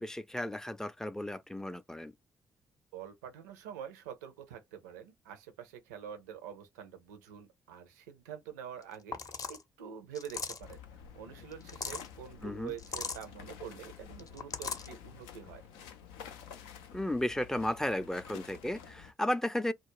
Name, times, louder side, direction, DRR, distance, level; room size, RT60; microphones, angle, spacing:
voice 1, 0.0-2.1 12.4-12.7 16.9-19.7, left 1 dB, 5° left, 0.4 m, -34 dB
voice 2, 2.9-10.8 11.1-15.6, right 9 dB, 85° right, 0.5 m, -46 dB
sound 1, 8.8-8.9 9.1-9.6 10.1-10.7 11.5-12.1 12.8-13.2 14.2-14.9, left 5 dB, 45° left, 0.6 m, -38 dB
sound 2, 10.6-19.1, left 8 dB, 80° left, 0.4 m, -50 dB
2.3 x 2.0 x 3.0 m
hypercardioid pair, 45°, 9 cm